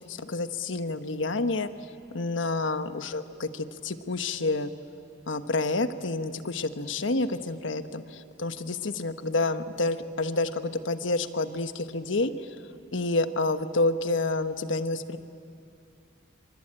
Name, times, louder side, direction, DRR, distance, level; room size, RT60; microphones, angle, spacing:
voice 1, 0.1-1.7 2.1-4.7 5.3-12.6 12.9-15.2, left 2 dB, 85° left, 10 dB, 1.2 m, -29 dB
26.5 x 25.0 x 8.9 m, 2.5 s
head